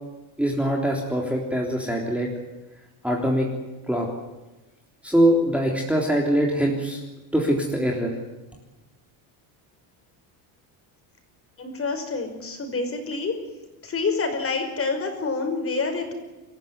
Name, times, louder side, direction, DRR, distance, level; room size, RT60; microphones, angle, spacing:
voice 1, 0.4-2.3 3.0-3.5 3.9-4.1 5.0-7.0 7.3-8.1, equal, 5° right, 0 dB, 3.6 m, -23 dB
voice 2, 11.6-13.3 13.8-16.1, left 4 dB, 30° left, 5 dB, 5.5 m, -27 dB
26.0 x 15.0 x 9.6 m, 1.1 s
cardioid pair, 135°, 46 cm